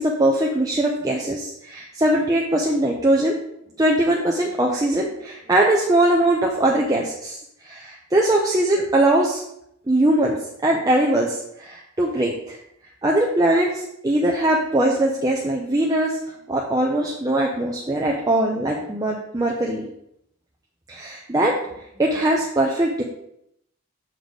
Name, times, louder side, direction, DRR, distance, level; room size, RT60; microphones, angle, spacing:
voice 1, 0.0-3.3 3.8-9.4 9.9-12.6 13.0-16.2 16.5-19.9 20.9-21.6 22.0-23.0, right 1 dB, 15° right, -1 dB, 0.5 m, -21 dB
6.6 x 4.2 x 4.7 m, 0.77 s
head